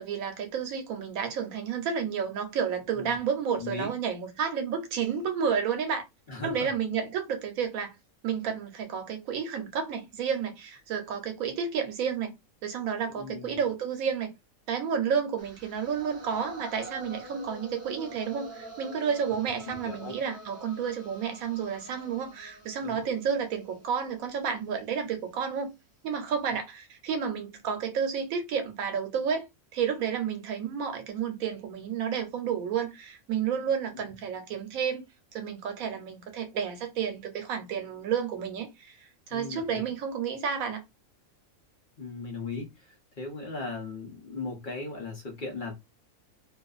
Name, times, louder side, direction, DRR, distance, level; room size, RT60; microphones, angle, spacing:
voice 1, 0.0-6.0 6.4-7.9 8.2-12.3 12.6-14.3 14.7-25.7 26.0-29.5 29.7-35.1 35.3-40.8, right 7 dB, 90° right, 1.1 m, -31 dB
voice 2, 3.5-3.9 6.3-6.7 13.0-13.5 19.6-20.1 22.8-23.2 33.9-34.0 39.3-39.8 42.0-45.7, left 3 dB, 45° left, 0.8 m, -38 dB
sound 1, 15.4-25.4, right 2 dB, 15° right, 0.6 m, -46 dB
2.5 x 2.4 x 2.3 m
omnidirectional pair, 1.4 m